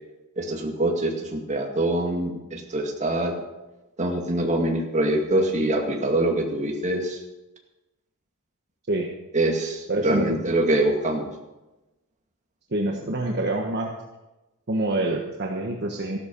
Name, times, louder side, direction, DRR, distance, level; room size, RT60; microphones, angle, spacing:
voice 1, 0.4-3.4 4.0-7.2 9.3-11.3, right 1 dB, 35° right, 2 dB, 2.2 m, -24 dB
voice 2, 9.9-10.4 12.7-13.9 14.7-16.2, right 2 dB, 50° right, 1 dB, 1.3 m, -26 dB
14.5 x 12.0 x 5.4 m, 1.0 s
head